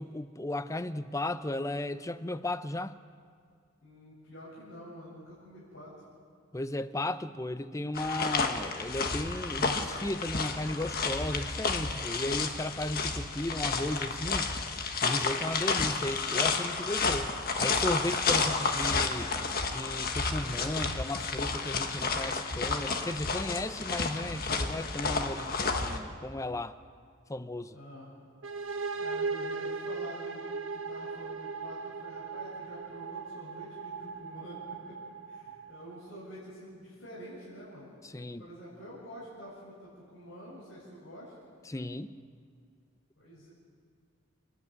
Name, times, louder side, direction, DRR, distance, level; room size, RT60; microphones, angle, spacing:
voice 1, 0.0-3.0 6.5-14.5 15.0-17.3 17.6-19.3 19.7-26.8 27.3-27.8 38.0-38.5 41.7-42.1, left 1 dB, 15° left, 12 dB, 0.6 m, -35 dB
voice 2, 3.8-5.9 27.7-28.1 28.9-35.0 35.3-37.9 38.4-41.3 43.2-43.5, equal, 65° left, -7 dB, 7.4 m, -48 dB
sound 1, 7.9-26.0, left 4 dB, 50° left, 1.5 m, -31 dB
sound 2, 28.4-36.1, right 4 dB, 85° right, 1.5 m, -38 dB
29.5 x 11.0 x 8.8 m, 2.2 s
head